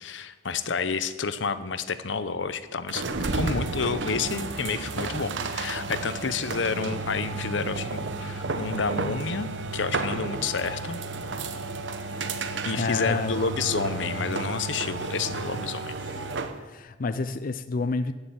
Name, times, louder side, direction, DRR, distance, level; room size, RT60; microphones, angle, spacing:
voice 1, 0.0-11.0 12.6-15.9, left 5 dB, 85° left, 12 dB, 0.8 m, -30 dB
sound 1, 2.9-16.6, right 3 dB, 85° right, 1.0 m, -32 dB
voice 2, 12.7-13.5 14.0-14.4 16.6-18.1, left 3 dB, 50° left, 11 dB, 0.5 m, -29 dB
15.0 x 6.8 x 8.8 m, 1.3 s
head